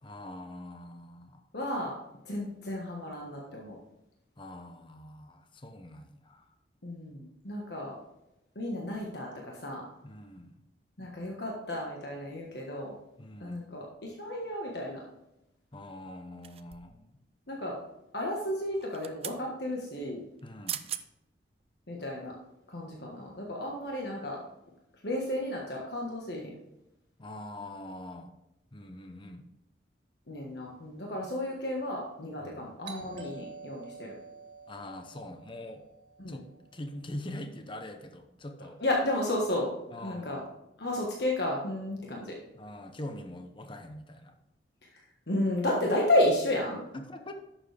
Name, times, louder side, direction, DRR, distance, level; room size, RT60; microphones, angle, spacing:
voice 1, 0.0-1.5 4.4-6.5 10.0-10.5 13.2-13.7 15.7-17.2 20.4-20.8 27.2-28.3 28.7-29.4 32.4-32.7 34.7-35.8 36.3-36.4 36.7-38.8 39.9-40.4 42.5-44.4 46.9-47.3, left 1 dB, 30° left, 6 dB, 0.8 m, -43 dB
voice 2, 1.5-1.9 2.2-3.8 6.8-7.9 8.5-9.8 11.0-12.9 13.4-15.0 17.5-17.8 18.1-20.2 21.9-22.3 22.7-24.4 25.0-26.5 30.3-34.1 36.2-36.4 38.8-39.7 40.0-40.4 40.8-42.3 45.3-46.8, left 1 dB, 65° left, -2 dB, 1.5 m, -32 dB
sound 1, 16.4-17.0 18.7-19.4 20.4-20.5 20.7-21.1 21.6-21.7, right 11 dB, 35° right, 0.5 m, -39 dB
Doorbell, 32.8-37.4, right 4 dB, 70° right, 2.3 m, -48 dB
11.5 x 7.3 x 3.4 m, 0.88 s
head